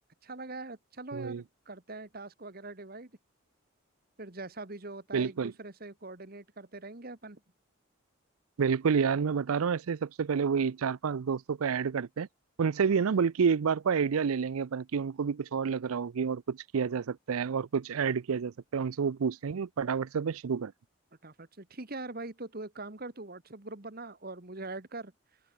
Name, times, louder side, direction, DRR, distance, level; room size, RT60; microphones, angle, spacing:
voice 1, 0.2-3.1 4.2-7.4 21.2-25.4, right 2 dB, 45° right, 1.6 m, -43 dB
voice 2, 1.1-1.4 5.1-5.5 8.6-12.3 12.6-20.7, right 6 dB, 85° right, 0.5 m, -29 dB
open air
head